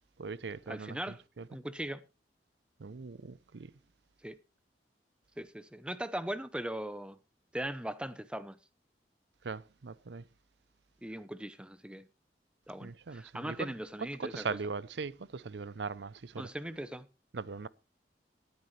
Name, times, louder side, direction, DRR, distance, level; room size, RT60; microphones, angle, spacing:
voice 1, 0.2-1.5 2.8-3.8 9.4-10.3 12.8-16.5 17.3-17.7, right 4 dB, 80° right, 0.6 m, -40 dB
voice 2, 0.7-1.2 1.5-2.0 4.2-4.4 5.4-7.2 7.5-8.6 11.0-12.1 12.7-14.4 16.4-17.1, right 1 dB, 5° right, 0.7 m, -39 dB
18.0 x 9.7 x 3.2 m
head